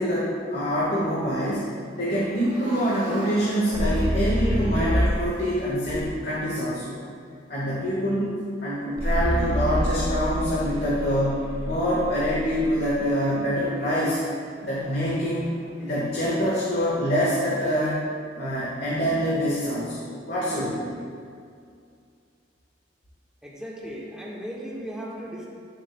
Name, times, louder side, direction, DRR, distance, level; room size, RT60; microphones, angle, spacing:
voice 1, 0.0-1.7 2.0-7.0 7.5-8.3 8.6-14.2 14.6-18.0 18.3-20.0 20.2-21.0, equal, 60° left, -7 dB, 1.5 m, -25 dB
sound 1, 2.1-5.4 5.9-6.4 9.0-13.1, equal, 20° right, 1.7 m, -28 dB
voice 2, 23.4-25.5, equal, 5° right, -5 dB, 1.3 m, -36 dB
11.0 x 7.4 x 2.2 m, 2.3 s
head